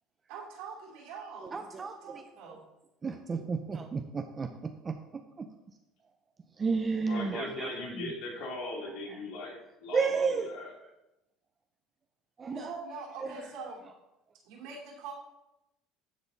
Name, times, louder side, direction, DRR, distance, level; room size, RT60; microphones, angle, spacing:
voice 1, 0.3-2.6 12.4-13.8 14.4-15.1, right 4 dB, 80° right, -2 dB, 2.7 m, -43 dB
voice 2, 1.4-2.2 3.0-4.9 5.4-5.5 6.6-8.1 9.1-9.2 9.9-10.5 12.4-12.7 13.2-13.5, right 5 dB, 25° right, 6 dB, 0.5 m, -32 dB
voice 3, 7.1-10.7, left 2 dB, 70° left, -2 dB, 2.6 m, -39 dB
12.0 x 4.1 x 3.9 m, 0.93 s
supercardioid pair, 115°, 0 cm